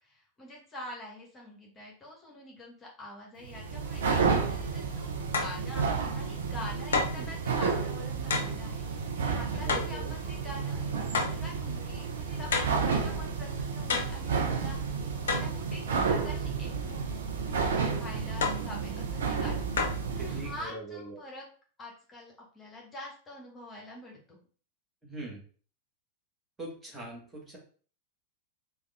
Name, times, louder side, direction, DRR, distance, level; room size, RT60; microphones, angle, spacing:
voice 1, 0.0-9.0 9.3-17.0 17.6-21.5 21.8-24.4, left 1 dB, 20° left, -2 dB, 1.1 m, -46 dB
sound 1, 3.4-20.6, right 5 dB, 65° right, 0.5 m, -31 dB
sound 2, 5.3-5.6 6.9-7.3 8.3-8.6 9.7-10.0 11.1-11.4 12.5-12.8 13.9-14.2 15.3-15.6 18.4-18.7 19.8-20.1, left 4 dB, 65° left, 0.5 m, -30 dB
voice 2, 9.5-10.2 20.2-21.2 25.0-25.4 26.6-27.6, right 1 dB, 15° right, -3 dB, 1.1 m, -41 dB
3.4 x 2.2 x 3.3 m, 0.42 s
figure-of-eight pair, 90°, 0 cm